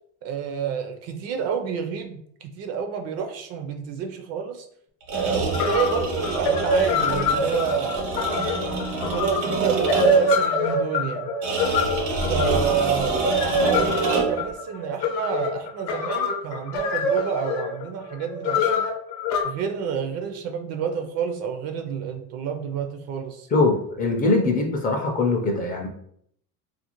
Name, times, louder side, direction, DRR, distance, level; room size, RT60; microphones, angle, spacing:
voice 1, 0.2-4.7 5.1-8.1 9.1-11.3 12.3-18.9 19.4-23.5, right 7 dB, 45° right, 4 dB, 0.4 m, -29 dB
sound 1, 5.0-10.4 11.4-14.5, right 3 dB, 85° right, 1.1 m, -26 dB
sound 2, 5.2-5.3 5.5-19.4, left 2 dB, 80° left, 0.7 m, -25 dB
voice 2, 23.5-25.9, left 3 dB, 25° left, 1 dB, 0.4 m, -22 dB
2.5 x 2.4 x 2.9 m, 0.68 s
supercardioid pair, 125°, 36 cm